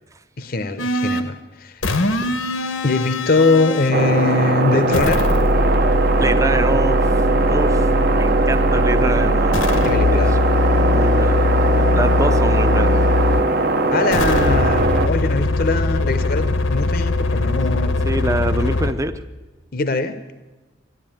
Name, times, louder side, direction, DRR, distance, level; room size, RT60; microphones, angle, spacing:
voice 1, 0.4-1.8 2.8-5.3 9.8-10.4 13.9-18.3 19.7-20.2, left 3 dB, 45° left, 11 dB, 0.7 m, -21 dB
sound 1, 0.8-1.3 1.8-4.0 4.9-13.5 14.1-18.9, left 1 dB, 85° left, 1.2 m, -20 dB
sound 2, 3.9-15.1, right 2 dB, 50° right, 0.8 m, -20 dB
voice 2, 6.2-10.4 10.7-13.0 18.1-19.2, right 2 dB, 15° right, 10 dB, 0.6 m, -26 dB
12.0 x 11.5 x 9.0 m, 1.2 s
head